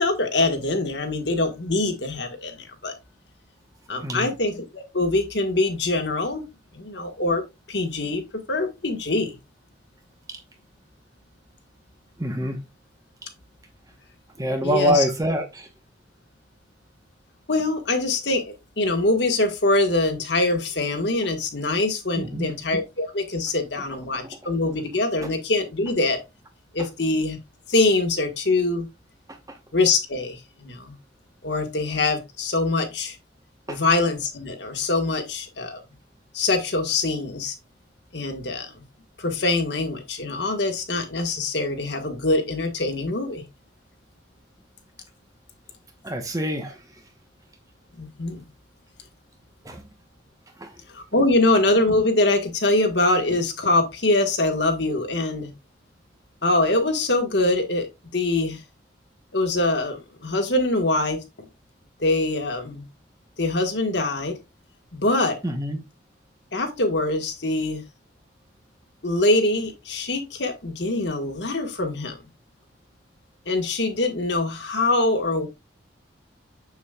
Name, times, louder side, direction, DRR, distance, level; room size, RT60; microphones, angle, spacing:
voice 1, 0.0-2.9 3.9-6.4 6.7-7.4 7.7-8.2 8.5-9.4 14.6-15.0 17.5-26.2 26.7-27.4 27.7-28.9 29.7-30.9 31.4-33.2 33.7-35.8 36.3-37.5 38.1-38.7 39.2-43.4 48.0-48.4 50.9-55.5 56.4-58.6 59.3-61.5 62.0-62.8 63.4-64.4 64.9-65.4 66.5-67.8 69.0-72.2 73.4-75.5, left 2 dB, 65° left, 1.6 m, -24 dB
voice 2, 4.0-4.3 10.3-10.4 12.2-12.7 14.4-15.7 22.2-22.5 24.2-24.3 25.2-25.3 29.5-29.6 33.7-33.8 46.0-46.8 49.6-49.9 50.6-50.8 65.4-65.8, equal, 15° right, 1.1 m, -26 dB
7.3 x 7.2 x 2.4 m
head